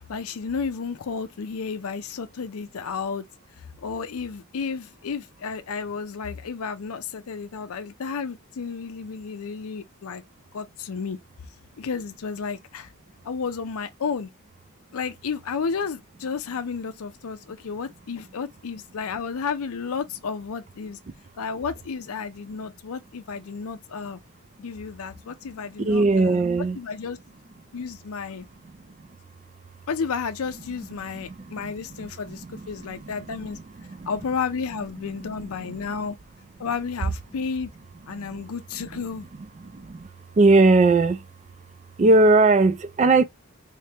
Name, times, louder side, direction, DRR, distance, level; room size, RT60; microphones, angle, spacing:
voice 1, 0.0-3.2 3.6-10.2 10.5-11.2 11.8-12.9 13.2-14.3 14.9-21.0 21.4-24.2 24.6-27.2 27.7-28.5 29.9-33.6 34.1-36.2 36.6-37.7 38.1-39.3, left 5 dB, 70° left, 0.5 m, -32 dB
voice 2, 25.9-26.8 40.4-41.2 42.0-43.2, right 3 dB, 30° right, 0.3 m, -17 dB
3.3 x 3.2 x 2.8 m
head